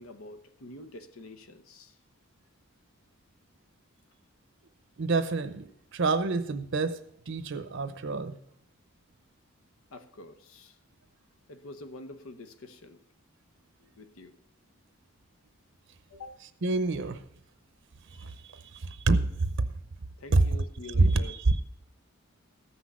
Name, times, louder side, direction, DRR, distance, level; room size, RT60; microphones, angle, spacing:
voice 1, 0.0-2.0 9.9-10.8 11.5-13.0 13.8-14.3 16.1-16.4 20.2-21.4, left 2 dB, 90° left, 1.0 m, -46 dB
voice 2, 5.0-7.0 7.3-8.4 16.1-16.2 16.6-17.2 18.2-19.5 20.3-20.4 21.0-21.6, right 3 dB, 60° right, 0.7 m, -27 dB
14.0 x 6.1 x 6.2 m
head